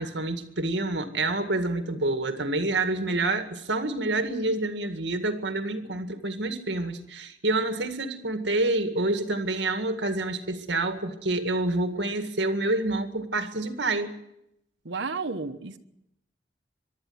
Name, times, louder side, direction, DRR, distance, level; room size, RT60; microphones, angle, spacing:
voice 1, 0.0-14.1, right 2 dB, 75° right, 7 dB, 2.0 m, -28 dB
voice 2, 14.8-15.8, right 4 dB, 90° right, 5 dB, 1.3 m, -32 dB
24.0 x 12.0 x 9.8 m, 0.81 s
head